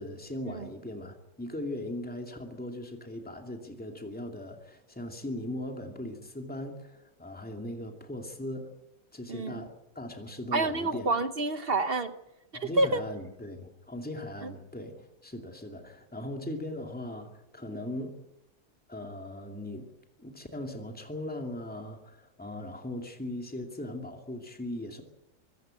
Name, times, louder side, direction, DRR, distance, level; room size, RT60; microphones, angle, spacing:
voice 1, 0.0-8.7 9.1-11.1 12.5-18.2 18.9-19.9 20.2-25.0, left 1 dB, 5° left, 3 dB, 2.5 m, -39 dB
voice 2, 9.3-9.6 10.5-12.1 12.6-13.0 14.4-14.5, right 2 dB, 40° right, 10 dB, 1.0 m, -28 dB
25.0 x 15.0 x 8.9 m, 0.94 s
omnidirectional pair, 1.9 m